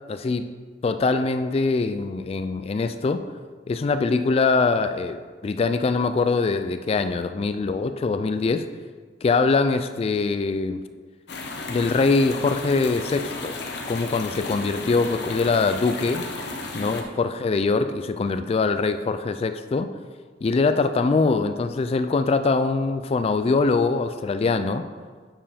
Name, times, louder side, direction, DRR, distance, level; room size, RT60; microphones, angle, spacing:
voice 1, 0.1-0.5 0.8-3.2 3.7-8.7 9.2-10.8 11.7-13.6 13.9-16.2 16.7-19.9 20.4-24.9, left 4 dB, 35° left, 10 dB, 0.3 m, -23 dB
sound 1, 11.3-17.0, left 3 dB, 65° left, 0.9 m, -34 dB
8.7 x 4.7 x 5.0 m, 1.5 s
head